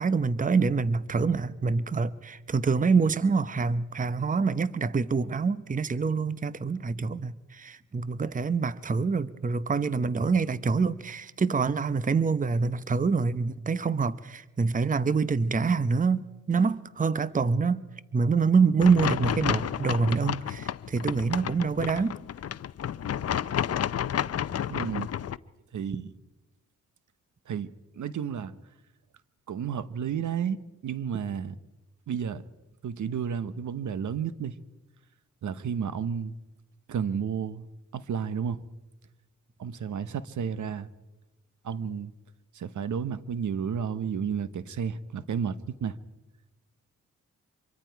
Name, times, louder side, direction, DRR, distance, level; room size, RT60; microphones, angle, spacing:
voice 1, 0.0-17.8 18.1-22.2, right 4 dB, 25° right, 0.8 m, -26 dB
sound 1, 18.8-25.4, left 9 dB, 50° left, 0.6 m, -31 dB
voice 2, 24.7-25.1 25.7-26.1 27.5-27.7 27.9-28.5 29.5-31.5 32.1-32.4 32.8-34.6 35.4-36.4 36.9-37.7 37.9-38.6 39.6-40.9 41.6-42.1 42.5-46.0, right 7 dB, 70° right, 1.0 m, -32 dB
25.0 x 23.0 x 4.6 m
cardioid pair, 70°, 31 cm